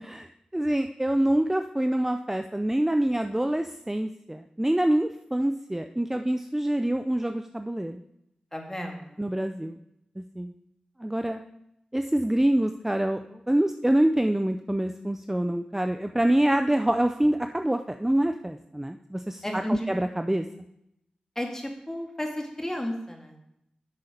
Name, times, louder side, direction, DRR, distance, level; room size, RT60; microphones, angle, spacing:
voice 1, 0.0-8.0 9.2-9.8 10.2-10.5 11.0-11.4 11.9-20.4, right 1 dB, 10° right, 7 dB, 0.6 m, -26 dB
voice 2, 8.5-9.0 19.4-19.9 21.4-23.4, equal, 15° left, 2 dB, 2.3 m, -32 dB
8.4 x 6.8 x 5.2 m, 0.78 s
cardioid pair, 45°, 3 cm